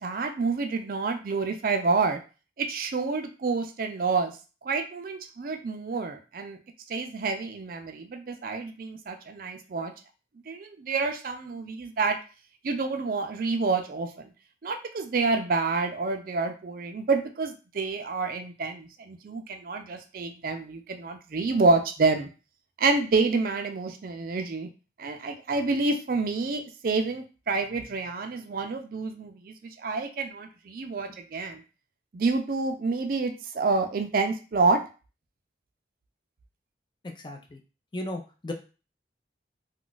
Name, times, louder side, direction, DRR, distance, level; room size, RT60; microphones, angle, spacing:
voice 1, 0.0-2.2 2.6-4.3 4.6-6.6 6.9-9.9 10.5-12.2 12.6-14.3 14.6-22.3 22.8-24.7 25.0-31.6 32.1-34.8, right 3 dB, 50° right, 6 dB, 0.4 m, -28 dB
voice 2, 37.0-37.6 37.9-38.5, left 1 dB, 25° left, 4 dB, 0.4 m, -36 dB
2.4 x 2.3 x 3.9 m, 0.33 s
head